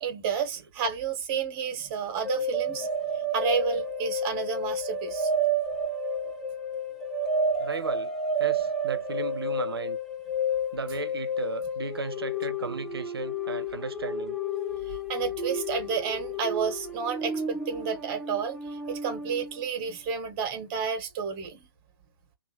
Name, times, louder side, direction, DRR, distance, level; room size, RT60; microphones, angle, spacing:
voice 1, 0.0-2.9 3.3-5.3 14.8-21.7, right 6 dB, 30° right, 1.1 m, -31 dB
sound 1, 2.2-19.7, equal, ahead, 0.6 m, -31 dB
voice 2, 7.6-8.1 8.4-10.0 10.7-14.4, right 4 dB, 70° right, 0.6 m, -35 dB
2.7 x 2.4 x 4.2 m
figure-of-eight pair, 125°, 13 cm